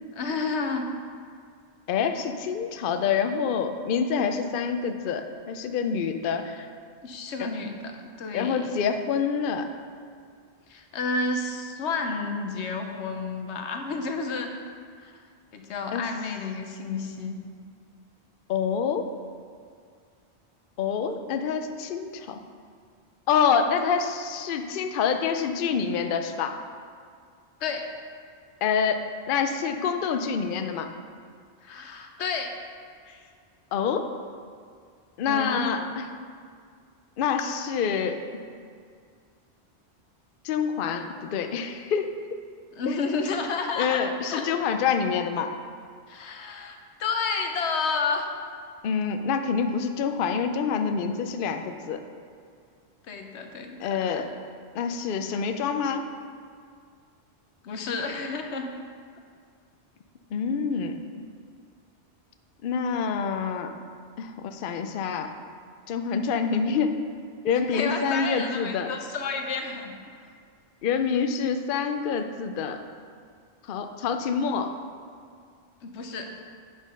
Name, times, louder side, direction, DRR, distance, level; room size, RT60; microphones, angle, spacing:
voice 1, 0.1-0.9 7.0-8.8 10.7-14.5 15.0-15.1 15.5-17.4 27.6-27.9 31.6-32.5 33.1-33.2 35.3-35.8 42.7-44.0 44.3-44.5 46.1-48.3 53.1-54.2 57.6-58.7 67.7-69.9 75.8-76.3, left 4 dB, 85° left, 5 dB, 1.1 m, -31 dB
voice 2, 1.9-6.7 7.4-7.5 8.3-9.7 15.9-16.0 18.5-19.1 20.8-22.4 23.3-26.6 28.6-30.9 33.7-34.1 35.2-36.1 37.2-38.2 40.4-42.1 42.9-43.0 43.8-45.5 48.8-52.0 53.8-54.3 54.7-56.1 60.3-61.0 62.6-63.7 64.2-65.3 65.9-67.0 67.4-68.9 70.8-72.8 73.7-74.8, left 6 dB, 60° left, 7 dB, 0.7 m, -27 dB
8.2 x 5.1 x 5.5 m, 2.1 s
omnidirectional pair, 1.1 m